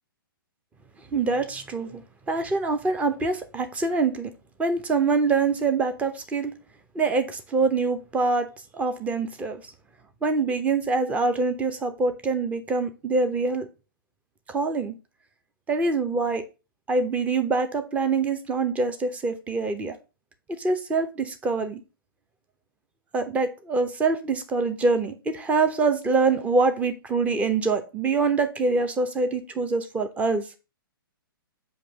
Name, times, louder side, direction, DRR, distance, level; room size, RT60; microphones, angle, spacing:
voice 1, 1.1-2.0 2.3-4.3 4.6-6.5 6.9-8.5 8.8-9.6 10.2-13.7 14.5-14.9 15.7-16.4 16.9-19.9 20.6-21.8 23.1-30.5, right 4 dB, 10° right, 8 dB, 0.7 m, -25 dB
6.9 x 3.0 x 5.2 m, 0.30 s
figure-of-eight pair, 120°, 12 cm